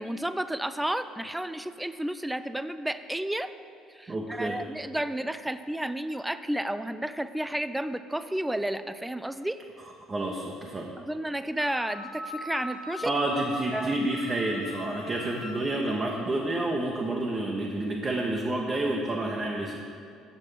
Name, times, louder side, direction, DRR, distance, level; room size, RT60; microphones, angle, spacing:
voice 1, 0.0-3.5 3.9-9.6 11.0-13.1 13.7-14.1, right 1 dB, 5° right, 12 dB, 0.3 m, -32 dB
voice 2, 4.1-4.6 10.1-10.9 13.0-19.8, right 2 dB, 25° right, -1 dB, 0.8 m, -29 dB
Wind instrument woodwind instrument, 11.6-15.9, left 2 dB, 75° left, 0.9 m, -41 dB
7.5 x 7.3 x 4.7 m, 2.5 s
figure-of-eight pair, 55°, 0 cm